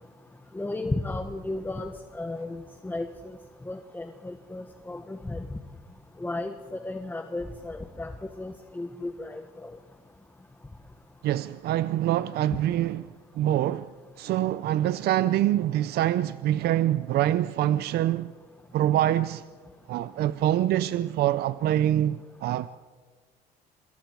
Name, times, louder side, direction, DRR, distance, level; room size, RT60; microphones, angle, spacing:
voice 1, 0.5-3.4 3.6-5.6 6.2-9.8, left 2 dB, 10° left, 1.4 m, -34 dB
voice 2, 11.2-13.0 13.3-13.9 14.2-18.3 18.7-19.5 19.9-22.7, right 12 dB, 70° right, 0.7 m, -25 dB
27.0 x 26.0 x 4.8 m
cardioid pair, 110°, 17 cm